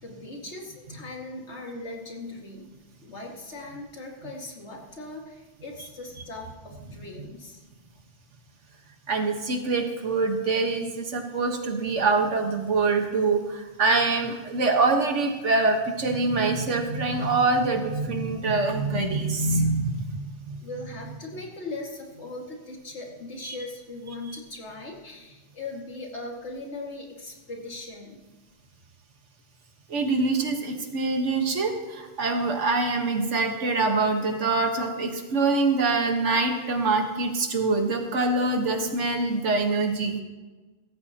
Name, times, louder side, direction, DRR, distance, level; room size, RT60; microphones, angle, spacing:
voice 1, 0.0-2.7 3.0-7.6 20.6-28.2, left 2 dB, 70° left, -1 dB, 2.4 m, -39 dB
voice 2, 9.1-20.6 23.4-23.6 29.9-40.2, right 3 dB, 85° right, 4 dB, 1.7 m, -25 dB
16.5 x 13.5 x 2.9 m, 1.2 s
omnidirectional pair, 1.2 m